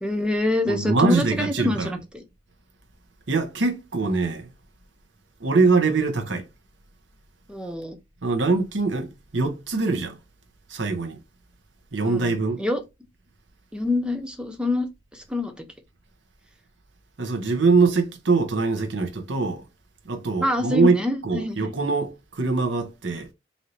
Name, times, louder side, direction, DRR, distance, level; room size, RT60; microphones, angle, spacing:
voice 1, 0.0-2.2 7.5-8.0 12.0-12.8 13.7-15.6 20.4-21.7, left 2 dB, 5° right, 0.6 m, -26 dB
voice 2, 0.7-1.9 3.3-4.5 5.4-6.5 8.2-10.2 10.7-11.2 11.9-12.6 17.2-19.6 20.0-21.0 21.2-23.3, right 4 dB, 75° right, 0.8 m, -23 dB
4.1 x 2.7 x 3.1 m
head